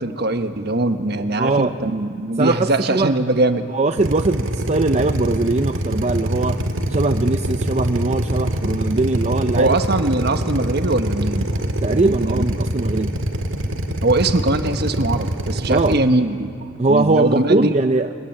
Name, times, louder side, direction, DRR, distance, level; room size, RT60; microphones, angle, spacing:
voice 1, 0.0-3.7 9.5-11.6 11.9-12.4 14.0-16.5 16.9-17.8, right 2 dB, 55° right, 8 dB, 1.3 m, -21 dB
voice 2, 1.4-1.7 2.4-3.1 3.7-6.6 6.9-9.8 11.8-13.1 15.7-16.0 16.8-18.1, right 3 dB, 35° right, 7 dB, 0.6 m, -20 dB
Drill, 4.0-16.0, right 1 dB, 80° right, 1.9 m, -24 dB
24.0 x 21.0 x 9.0 m, 2.4 s
head